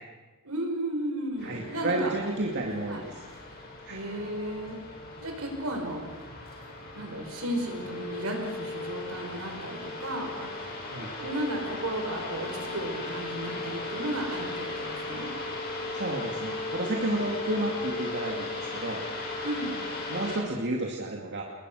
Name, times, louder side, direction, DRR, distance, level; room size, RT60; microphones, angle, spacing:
voice 1, 0.4-2.1 2.9-3.0 3.9-4.8 5.2-6.1 6.9-10.8 11.2-15.3 19.4-19.8, right 1 dB, 75° right, 3 dB, 5.7 m, -34 dB
sound 1, 1.4-20.4, left 2 dB, 45° left, 6.9 m, -37 dB
voice 2, 1.4-3.1 3.8-4.0 10.9-11.1 15.9-19.0 20.1-21.4, right 2 dB, 55° right, 0 dB, 2.5 m, -31 dB
29.5 x 20.5 x 6.5 m, 1.3 s
head